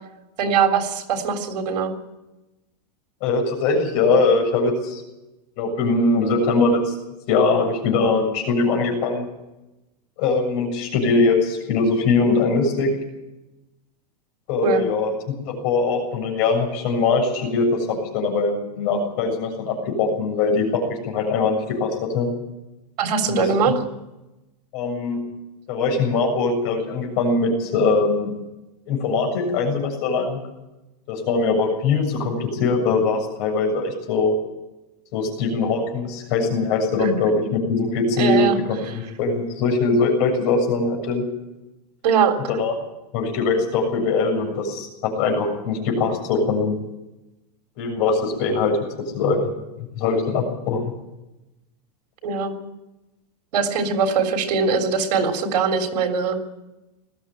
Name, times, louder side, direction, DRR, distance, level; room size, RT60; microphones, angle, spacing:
voice 1, 0.4-1.9 14.6-14.8 23.0-23.8 37.0-37.2 38.2-38.6 38.8-39.0 42.0-42.4 52.2-52.5 53.5-56.4, right 5 dB, 85° right, 5 dB, 3.8 m, -21 dB
voice 2, 3.2-5.0 5.6-6.9 7.3-9.2 10.2-12.9 14.5-22.3 23.3-23.5 24.7-25.2 25.7-28.3 28.9-30.4 31.1-34.4 35.1-41.2 42.5-42.8 43.1-46.8 47.8-48.8 49.1-49.4 49.8-50.8, left 3 dB, 40° left, 2 dB, 7.3 m, -21 dB
20.0 x 14.5 x 9.1 m, 0.99 s
supercardioid pair, 175°, 21 cm